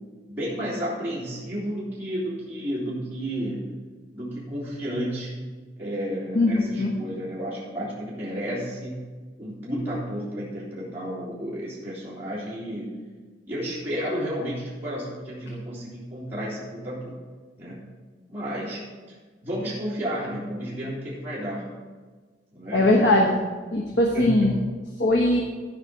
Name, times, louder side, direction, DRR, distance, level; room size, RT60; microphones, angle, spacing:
voice 1, 0.3-3.6 4.1-5.4 5.8-9.0 9.4-12.9 13.5-17.2 17.6-17.8 18.3-19.1 19.4-21.7 22.5-22.9 23.8-24.6, equal, 15° right, -10 dB, 3.2 m, -32 dB
voice 2, 6.3-6.9 22.7-23.4 23.7-24.5 25.0-25.4, left 1 dB, 80° left, 0 dB, 1.2 m, -20 dB
14.5 x 5.2 x 5.7 m, 1.4 s
head